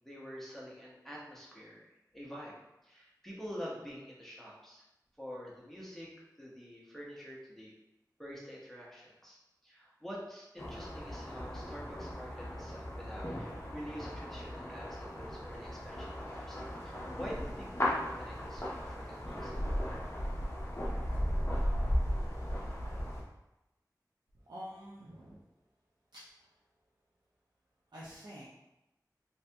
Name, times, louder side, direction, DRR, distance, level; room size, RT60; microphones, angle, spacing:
voice 1, 0.0-1.9 2.1-2.5 2.8-4.8 5.2-6.1 6.4-7.7 8.2-19.6, equal, 5° left, -5 dB, 0.9 m, -47 dB
sound 1, 10.6-23.2, equal, 40° left, 0.7 m, -36 dB
voice 2, 24.5-25.4 26.1-26.2 27.9-28.5, equal, 85° right, -7 dB, 0.5 m, -47 dB
2.7 x 2.5 x 3.3 m, 0.93 s
wide cardioid pair, 50°, 7 cm